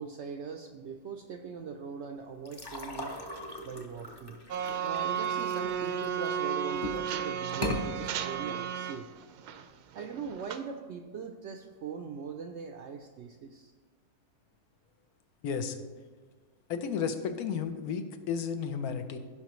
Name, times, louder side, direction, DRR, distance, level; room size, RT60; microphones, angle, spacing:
voice 1, 0.0-3.2 3.6-4.4 4.8-9.1 9.9-13.7, right 6 dB, 65° right, 6 dB, 0.7 m, -41 dB
sound 1, 2.5-6.3 6.7-7.1 7.5-7.8, left 1 dB, 25° left, 0.6 m, -38 dB
sound 2, 4.5-9.0 9.4-9.6 9.9-10.6, right 8 dB, 85° right, 1.2 m, -33 dB
voice 2, 15.4-15.8 16.7-19.2, left 6 dB, 75° left, 8 dB, 1.2 m, -33 dB
15.5 x 5.7 x 3.1 m, 1.5 s
omnidirectional pair, 1.6 m